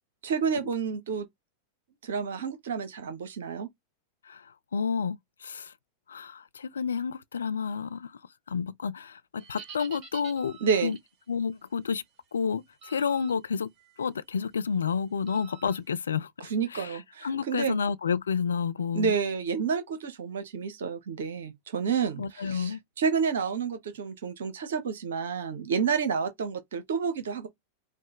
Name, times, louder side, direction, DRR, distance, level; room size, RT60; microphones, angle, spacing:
voice 1, 0.2-1.3 2.0-3.7 10.6-11.0 16.4-17.8 18.9-27.5, right 6 dB, 60° right, 0.7 m, -29 dB
voice 2, 4.2-5.7 6.1-8.2 8.5-11.0 11.3-12.0 12.3-13.7 14.0-19.1 22.2-22.8, left 6 dB, 70° left, 0.4 m, -30 dB
sound 1, 9.4-11.1 12.8-13.3 13.8-14.0 15.3-15.8, right 7 dB, 35° right, 1.9 m, -47 dB
5.0 x 2.1 x 2.9 m
figure-of-eight pair, 90°, 0 cm